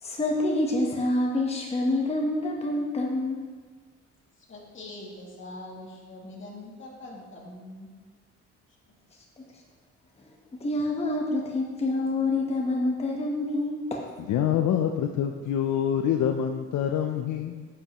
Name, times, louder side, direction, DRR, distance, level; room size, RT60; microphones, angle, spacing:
voice 1, 0.0-3.5 10.6-14.1, left 2 dB, 20° left, -1 dB, 1.1 m, -27 dB
voice 2, 4.5-7.9, left 2 dB, 40° left, -3 dB, 2.4 m, -43 dB
voice 3, 14.3-17.7, left 9 dB, 75° left, 4 dB, 0.6 m, -26 dB
9.7 x 7.6 x 3.0 m, 1.4 s
cardioid pair, 90°, 30 cm